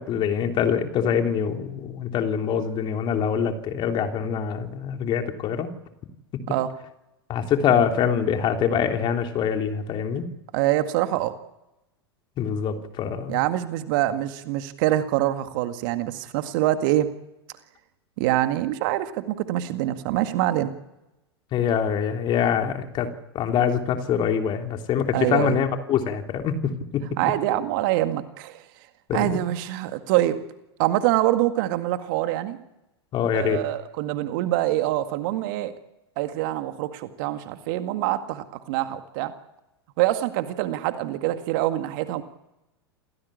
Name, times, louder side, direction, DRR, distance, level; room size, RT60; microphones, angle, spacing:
voice 1, 0.0-5.7 7.3-10.3 12.4-13.4 21.5-23.1 23.3-26.6 26.9-27.0 29.1-29.4 33.1-33.6, left 8 dB, 35° left, 5 dB, 3.2 m, -24 dB
voice 2, 10.5-11.3 13.3-17.1 18.2-20.7 25.1-25.6 27.2-28.6 29.1-30.4 30.8-32.6 33.3-35.7 36.2-39.3 40.0-42.2, right 14 dB, 50° right, 9 dB, 1.9 m, -25 dB
28.0 x 18.0 x 8.7 m, 0.92 s
figure-of-eight pair, 90°, 14 cm